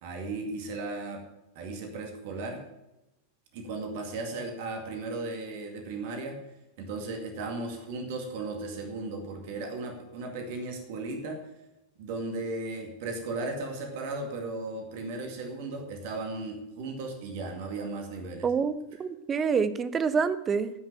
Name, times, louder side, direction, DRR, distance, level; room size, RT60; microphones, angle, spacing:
voice 1, 0.0-1.2 1.6-2.6 3.5-6.4 6.8-11.4 12.0-18.5, right 3 dB, 50° right, 4 dB, 2.1 m, -36 dB
voice 2, 18.4-18.7 19.0-20.7, right 6 dB, 20° right, 14 dB, 0.7 m, -26 dB
10.5 x 6.2 x 8.8 m, 0.95 s
figure-of-eight pair, 90°, 0 cm